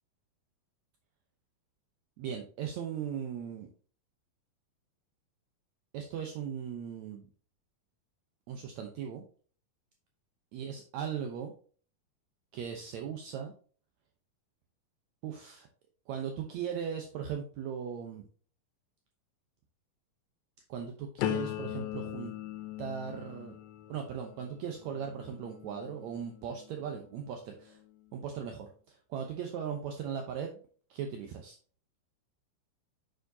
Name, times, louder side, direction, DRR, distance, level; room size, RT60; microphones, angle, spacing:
voice 1, 2.2-3.7 5.9-7.3 8.5-9.2 10.5-11.5 12.5-13.5 15.2-15.7 16.1-18.2 20.7-22.3 22.8-23.6 23.9-27.8 28.1-30.6 30.9-31.6, right 8 dB, 75° right, 2 dB, 1.7 m, -38 dB
sound 1, 21.2-27.1 27.6-28.0, left 12 dB, 85° left, 2.6 m, -40 dB
7.0 x 6.5 x 2.7 m, 0.42 s
omnidirectional pair, 4.3 m